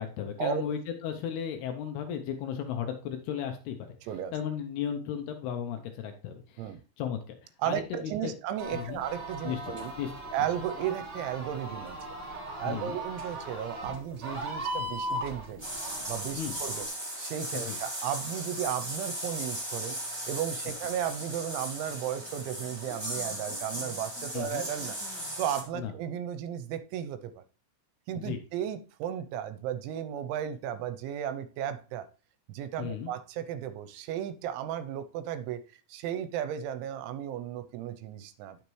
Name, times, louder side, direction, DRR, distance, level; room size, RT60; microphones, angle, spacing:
voice 1, 0.0-3.9 4.3-7.4 7.6-8.4 8.7-9.0 9.4-10.1 12.7-13.0 16.4-16.6 17.5-17.8 24.3-24.6 25.7-25.9 28.2-28.4 32.8-33.1, left 8 dB, 75° left, 2.6 m, -35 dB
voice 2, 4.0-4.3 6.6-6.8 7.6-9.9 10.3-12.0 12.6-15.6 16.1-16.9 17.2-20.0 20.3-25.0 25.4-27.4 28.1-32.1 32.5-38.6, right 10 dB, 85° right, 3.0 m, -34 dB
sound 1, 8.6-16.8, right 1 dB, 60° right, 1.0 m, -38 dB
Screeching bats, 15.6-25.6, right 1 dB, 20° right, 0.7 m, -37 dB
sound 2, 19.8-25.8, left 3 dB, 40° left, 1.7 m, -54 dB
9.9 x 6.8 x 3.1 m
omnidirectional pair, 5.3 m